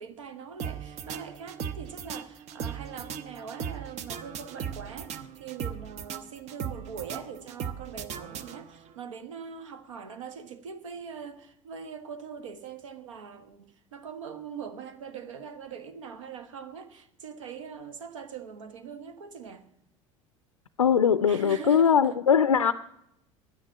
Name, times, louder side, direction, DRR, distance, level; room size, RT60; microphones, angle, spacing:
voice 1, 0.0-19.7 21.2-22.2, right 6 dB, 70° right, 1.1 m, -42 dB
sound 1, 0.6-8.9, right 8 dB, 45° right, 0.8 m, -38 dB
voice 2, 20.8-22.7, left 7 dB, 85° left, 0.4 m, -21 dB
11.0 x 9.9 x 7.2 m
figure-of-eight pair, 70°, 17 cm